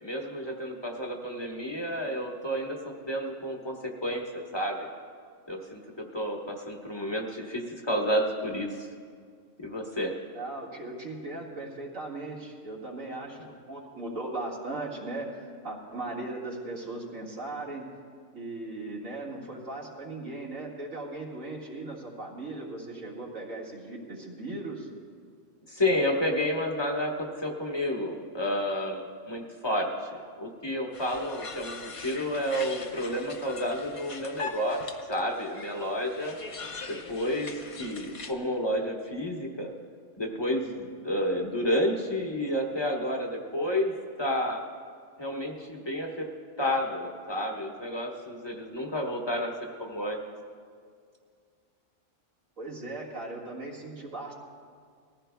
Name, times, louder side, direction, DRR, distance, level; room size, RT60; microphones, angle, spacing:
voice 1, 0.0-2.8 3.0-4.9 5.5-8.9 9.6-10.1 25.7-36.4 36.9-39.7 40.2-43.9 44.2-44.7 45.2-46.3 46.6-50.2, equal, 20° left, 0 dB, 1.1 m, -30 dB
voice 2, 10.3-17.9 18.3-24.9 52.6-54.3, right 2 dB, 85° right, -3 dB, 2.2 m, -38 dB
sound 1, 30.9-38.3, left 4 dB, 40° left, 0.5 m, -42 dB
20.5 x 15.0 x 2.3 m, 2.1 s
omnidirectional pair, 1.3 m